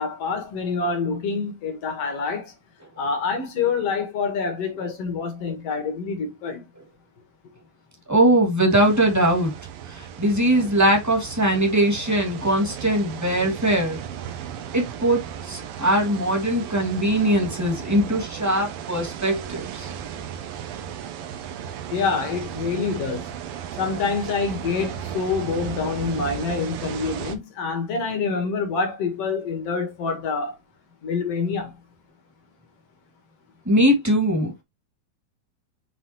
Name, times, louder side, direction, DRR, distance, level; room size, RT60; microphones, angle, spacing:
voice 1, 0.0-2.5 3.0-6.7 21.9-23.3 23.8-30.6 31.0-31.7, left 5 dB, 50° left, 2.3 m, -26 dB
voice 2, 8.1-9.5 9.9-14.0 14.7-19.9 33.6-34.6, right 1 dB, 5° right, 1.6 m, -21 dB
sound 1, 8.7-27.4, right 9 dB, 75° right, 2.7 m, -35 dB
9.9 x 4.0 x 2.9 m
omnidirectional pair, 4.3 m